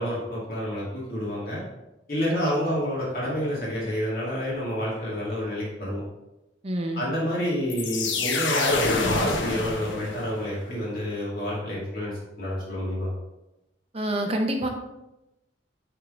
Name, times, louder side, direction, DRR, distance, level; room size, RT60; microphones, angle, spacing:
voice 1, 0.0-1.6 2.1-6.0 6.9-13.1, equal, 50° left, -7 dB, 2.4 m, -28 dB
voice 2, 2.3-2.8 6.6-7.0 13.9-14.7, right 1 dB, 30° right, 3 dB, 0.7 m, -28 dB
sound 1, 7.7-10.5, left 3 dB, 85° left, 1.0 m, -27 dB
9.8 x 3.7 x 3.8 m, 0.93 s
head